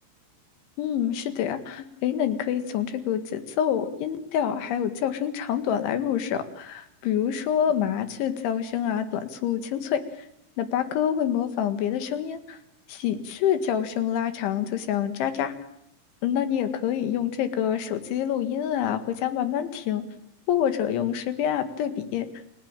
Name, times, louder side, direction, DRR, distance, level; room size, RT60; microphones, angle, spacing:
voice 1, 0.8-10.3 10.6-12.6 12.9-15.5 16.2-20.0 20.5-22.3, left 9 dB, 85° left, 9 dB, 4.2 m, -27 dB
29.0 x 20.5 x 9.0 m, 0.78 s
omnidirectional pair, 5.2 m